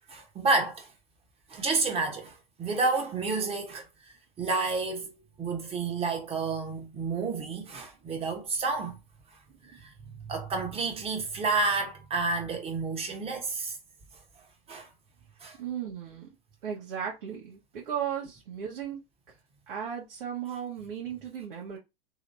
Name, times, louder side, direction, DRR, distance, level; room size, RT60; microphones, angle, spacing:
voice 1, 0.1-0.9 1.5-3.9 4.4-9.0 9.8-9.9 10.2-13.8 14.7-14.9 15.4-15.6, right 3 dB, 20° right, 1.0 m, -30 dB
voice 2, 15.6-16.3 16.6-19.0 19.7-21.8, right 8 dB, 60° right, 1.3 m, -36 dB
3.1 x 3.1 x 2.6 m
hypercardioid pair, 110°, 29 cm